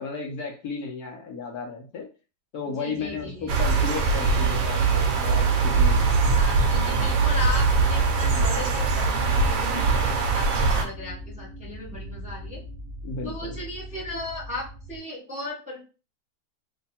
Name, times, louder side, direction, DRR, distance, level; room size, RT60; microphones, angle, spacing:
voice 1, 0.0-2.1 2.5-6.2 13.0-13.6, left 5 dB, 70° left, 2 dB, 1.3 m, -34 dB
voice 2, 2.8-3.5 6.3-12.6 13.2-15.8, left 2 dB, 5° right, -4 dB, 0.8 m, -36 dB
sound 1, 2.9-15.0, left 1 dB, 45° left, 0.4 m, -40 dB
sound 2, 3.5-10.8, right 4 dB, 65° right, 1.0 m, -22 dB
3.2 x 2.1 x 4.2 m, 0.34 s
omnidirectional pair, 1.8 m